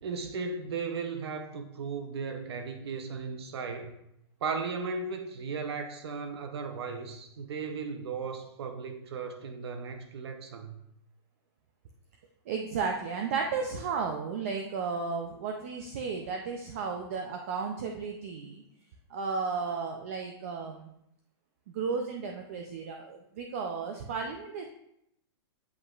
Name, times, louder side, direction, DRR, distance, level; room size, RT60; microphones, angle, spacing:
voice 1, 0.0-3.9 4.4-10.8, right 5 dB, 70° right, 6 dB, 0.7 m, -36 dB
voice 2, 12.5-18.6 19.1-20.9 21.7-24.6, right 5 dB, 30° right, 3 dB, 0.4 m, -34 dB
7.9 x 5.2 x 2.4 m, 0.78 s
hypercardioid pair, 175°, 14 cm